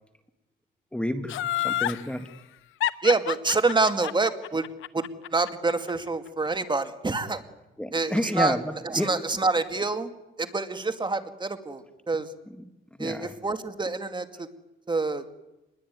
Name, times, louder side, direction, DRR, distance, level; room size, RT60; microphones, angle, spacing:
voice 1, 0.9-2.3 7.8-8.6 8.9-9.1 13.0-13.3, left 1 dB, 5° left, 9 dB, 1.8 m, -29 dB
Laughter, 1.3-2.0 2.8-5.9 6.3-6.4, left 13 dB, 85° left, 1.1 m, -28 dB
voice 2, 3.0-4.6 4.9-5.1 5.3-7.4 7.9-8.6 8.8-10.1 10.4-12.3 13.0-14.5 14.9-15.2, right 3 dB, 25° right, 9 dB, 2.3 m, -26 dB
27.5 x 21.5 x 9.5 m, 0.98 s
cardioid pair, 90°, 20 cm